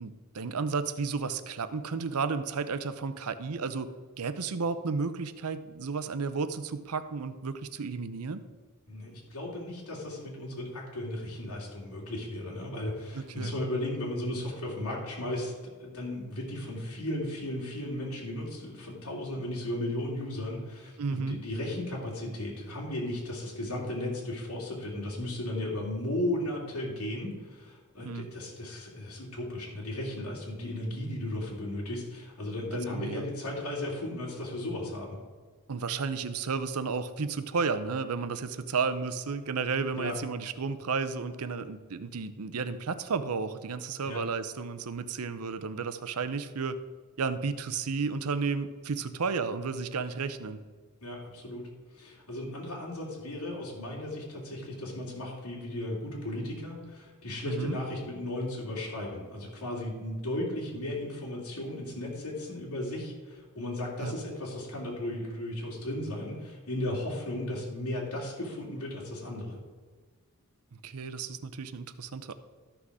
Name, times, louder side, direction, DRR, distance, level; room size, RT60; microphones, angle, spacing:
voice 1, 0.0-3.9 4.2-8.4 13.1-13.5 21.0-21.4 28.0-28.3 32.9-33.2 35.7-46.8 47.2-50.6 57.5-57.8 64.0-64.1 70.8-72.3, right 5 dB, 75° right, 12 dB, 0.7 m, -32 dB
voice 2, 8.9-15.5 15.8-35.2 39.9-40.1 44.0-44.2 51.0-51.6 51.9-69.6, left 1 dB, 70° left, -4 dB, 2.9 m, -35 dB
13.0 x 6.1 x 4.9 m, 1.5 s
head